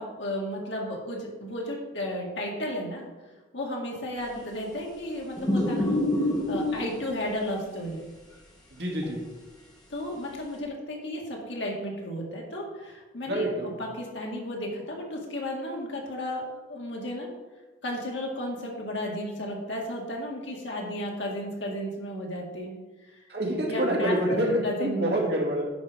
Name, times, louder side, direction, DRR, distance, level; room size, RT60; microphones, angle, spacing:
voice 1, 0.0-3.1 3.5-5.9 6.5-8.0 9.9-17.3 17.8-22.8 23.1-23.2 23.6-25.1, left 1 dB, 75° left, -1 dB, 2.1 m, -33 dB
sound 1, 5.4-6.9 9.0-9.1, left 1 dB, 20° left, 1.6 m, -26 dB
voice 2, 8.7-9.2 13.3-13.7 23.3-25.6, right 1 dB, 60° right, -2 dB, 2.5 m, -27 dB
10.0 x 5.0 x 5.1 m, 1.2 s
head